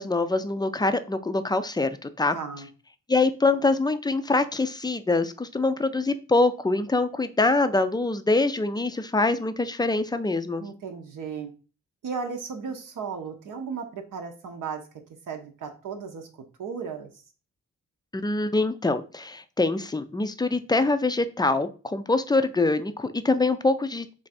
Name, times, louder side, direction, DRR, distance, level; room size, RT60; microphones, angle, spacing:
voice 1, 0.0-2.4 3.1-10.6 18.1-24.1, left 3 dB, 15° left, 10 dB, 0.4 m, -24 dB
voice 2, 2.3-2.7 10.6-11.5 12.0-14.9 15.3-16.3 16.6-17.1, right 5 dB, 75° right, 3 dB, 0.7 m, -35 dB
3.4 x 2.5 x 4.0 m, 0.35 s
cardioid pair, 60°, 32 cm